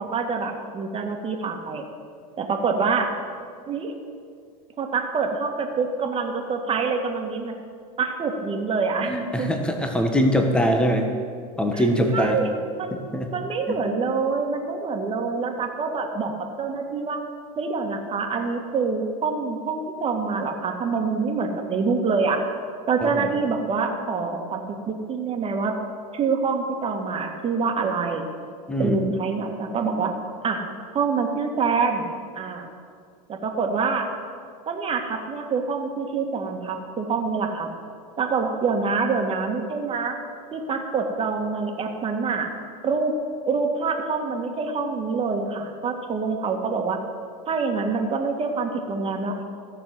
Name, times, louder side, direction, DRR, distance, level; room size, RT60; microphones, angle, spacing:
voice 1, 0.0-1.9 2.4-3.1 3.7-3.9 4.8-7.5 8.0-9.1 9.4-9.5 11.7-11.8 12.1-13.0 13.3-16.3 16.6-17.2 17.6-22.4 22.9-25.7 26.1-28.3 28.8-30.1 30.4-30.6 30.9-32.1 32.3-32.7 33.3-34.1 34.7-37.7 38.2-40.2 40.5-42.5 42.8-43.2 43.5-47.0 47.5-49.4, right 4 dB, 30° right, 3 dB, 1.9 m, -26 dB
voice 2, 9.0-11.1 11.6-12.4 12.9-13.3 13.7-13.8 23.0-23.3 28.7-29.0, equal, 5° left, 4 dB, 1.4 m, -23 dB
15.0 x 6.9 x 7.9 m, 2.1 s
hypercardioid pair, 110°, 20 cm